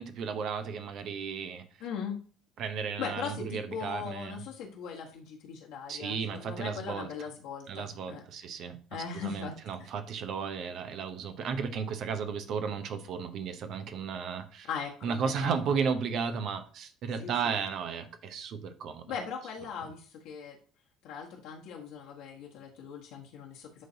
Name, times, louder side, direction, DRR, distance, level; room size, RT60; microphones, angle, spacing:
voice 1, 0.0-1.7 2.6-4.4 5.9-7.1 7.7-14.7 15.0-19.1, right 6 dB, 50° right, 0.8 m, -34 dB
voice 2, 1.8-2.2 3.0-8.2 8.9-9.6 14.7-15.7 17.2-17.5 19.1-20.6 21.0-23.8, left 6 dB, 60° left, 1.3 m, -39 dB
11.0 x 3.9 x 2.8 m
figure-of-eight pair, 55°, 0 cm